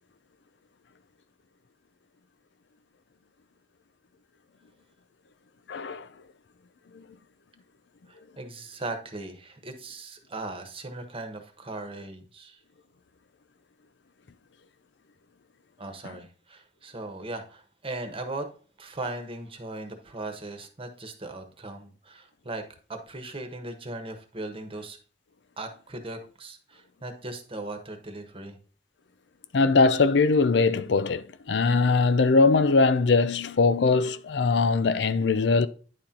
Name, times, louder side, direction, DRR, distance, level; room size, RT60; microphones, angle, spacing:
voice 1, 5.7-6.1 29.5-35.7, left 4 dB, 75° left, 0.5 m, -21 dB
voice 2, 8.1-12.6 15.8-18.5 18.8-22.6 22.9-25.0 25.6-28.6, right 2 dB, 30° right, 1.2 m, -38 dB
10.0 x 4.4 x 3.8 m
head